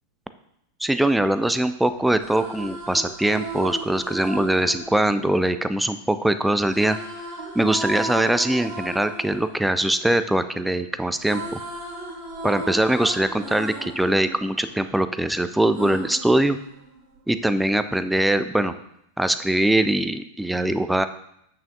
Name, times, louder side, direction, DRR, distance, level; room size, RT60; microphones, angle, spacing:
voice 1, 0.8-7.0 7.6-11.6 12.4-16.6 17.3-18.7 19.2-21.1, right 1 dB, 5° right, 11 dB, 0.4 m, -22 dB
sound 1, 2.0-6.1 6.7-10.7 11.0-15.2 15.7-17.2, right 1 dB, 40° right, 2.8 m, -36 dB
8.7 x 5.7 x 2.7 m, 0.77 s
figure-of-eight pair, 90°, 0 cm